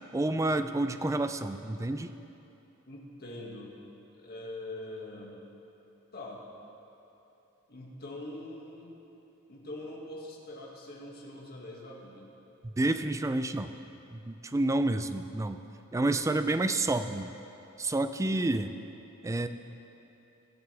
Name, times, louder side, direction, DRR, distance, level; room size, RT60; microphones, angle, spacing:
voice 1, 0.1-2.1 12.6-13.7 14.1-15.6 15.9-17.3 17.8-18.7 19.2-19.5, right 2 dB, 15° right, 9 dB, 0.4 m, -29 dB
voice 2, 2.9-3.8 4.1-5.4 6.1-6.4 7.7-8.9 9.5-12.3, left 1 dB, 45° left, -3 dB, 2.0 m, -43 dB
22.0 x 8.0 x 3.4 m, 2.9 s
head